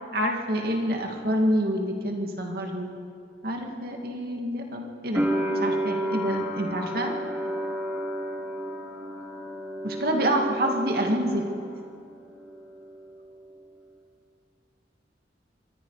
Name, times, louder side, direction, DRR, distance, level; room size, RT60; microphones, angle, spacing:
voice 1, 0.1-2.9 3.4-5.3 5.6-7.1 9.8-11.4, equal, 55° right, 2 dB, 2.3 m, -27 dB
sound 1, 5.1-12.0 12.2-13.1, right 1 dB, 10° right, 2.9 m, -31 dB
25.5 x 23.5 x 5.0 m, 2.5 s
head